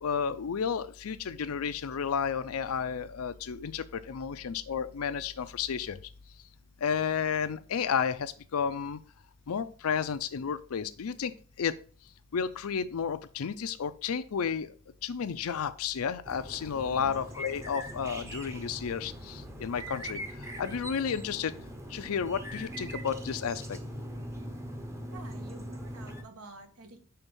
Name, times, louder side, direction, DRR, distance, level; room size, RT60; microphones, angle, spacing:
voice 1, 0.0-6.0 6.8-9.0 9.5-11.3 11.6-11.8 12.3-14.7 15.0-20.2 20.6-21.5 21.9-23.8, left 7 dB, 85° left, 13 dB, 0.5 m, -32 dB
sound 1, 16.3-26.2, equal, 15° right, 0.7 m, -41 dB
voice 2, 25.1-27.0, right 2 dB, 85° right, 6 dB, 1.1 m, -49 dB
5.8 x 3.5 x 5.3 m, 0.41 s
head